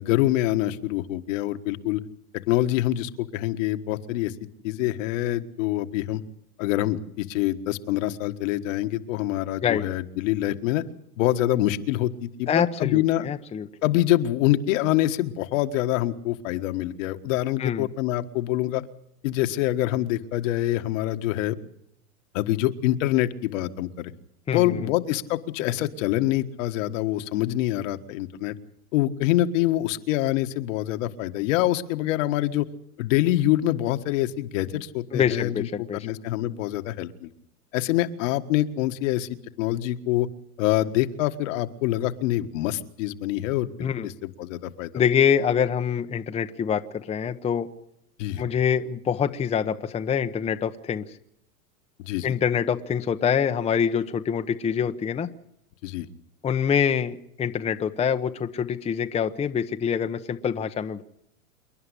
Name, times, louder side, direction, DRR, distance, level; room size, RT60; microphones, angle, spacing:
voice 1, 0.0-2.0 2.5-4.3 4.6-6.2 6.6-10.8 11.2-13.2 13.8-18.8 19.2-21.6 22.3-24.1 24.5-28.5 28.9-32.6 33.0-37.3 37.7-40.3 40.6-44.9 48.2-48.4 52.0-52.3 55.8-56.1, left 14 dB, 60° left, 8 dB, 1.6 m, -25 dB
voice 2, 12.5-13.7 17.6-17.9 24.5-24.8 35.1-36.1 43.8-44.1 44.9-47.7 48.4-51.0 52.2-55.3 56.4-61.0, left 7 dB, 15° left, 7 dB, 0.8 m, -25 dB
28.0 x 11.0 x 10.0 m, 0.75 s
supercardioid pair, 135°, 44 cm